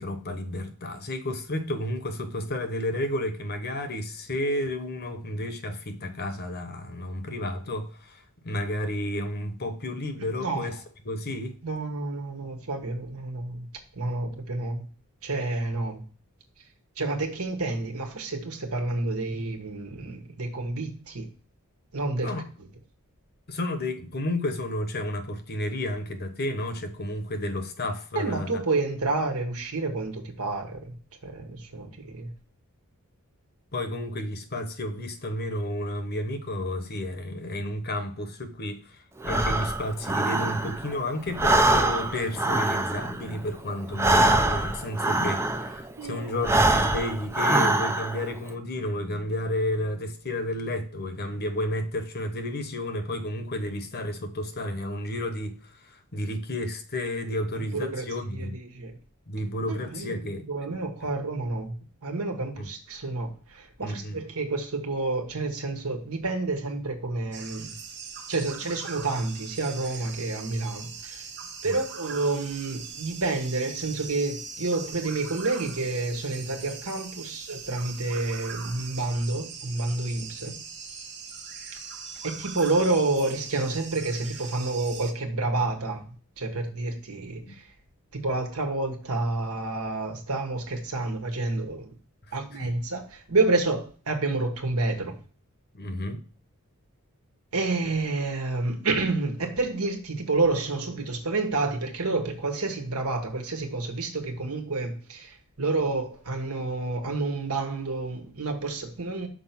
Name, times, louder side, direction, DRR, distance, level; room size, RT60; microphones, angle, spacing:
voice 1, 0.0-10.8 11.0-11.6 22.2-22.4 23.5-28.6 33.7-58.6 59.3-60.4 62.6-62.7 63.8-64.2 71.6-71.8 80.4-80.6 87.4-87.5 92.6-92.7 95.7-96.2, left 1 dB, 45° left, 1.1 m, -31 dB
voice 2, 11.6-13.7 13.9-14.9 15.2-16.0 17.0-21.3 21.9-22.3 22.6-22.7 28.1-30.9 31.2-32.3 46.0-46.3 57.7-58.9 59.7-60.2 60.4-61.7 62.0-67.7 68.3-71.3 71.6-80.5 82.2-86.1 86.4-87.7 88.1-91.9 92.3-95.2 97.5-109.3, right 3 dB, 70° right, 1.5 m, -29 dB
Breathing, 39.2-41.0 41.3-45.9 46.4-48.3, right 2 dB, 10° right, 0.5 m, -24 dB
sound 1, 67.3-85.1, right 6 dB, 50° right, 1.2 m, -41 dB
6.3 x 4.6 x 5.8 m
head